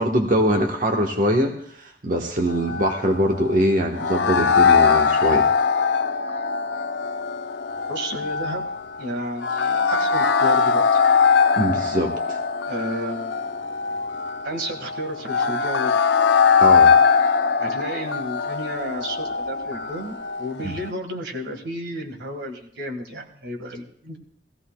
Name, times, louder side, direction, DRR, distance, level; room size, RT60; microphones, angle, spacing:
voice 1, 0.0-5.5 11.6-12.4 16.6-16.9 20.6-20.7, equal, 50° right, 2 dB, 1.1 m, -22 dB
sound 1, 2.5-20.9, left 5 dB, 75° left, 0.5 m, -21 dB
voice 2, 7.9-8.7 9.0-11.0 12.6-13.4 14.4-16.0 17.6-24.2, equal, 85° right, 4 dB, 1.7 m, -32 dB
18.0 x 15.0 x 2.3 m, 0.66 s
head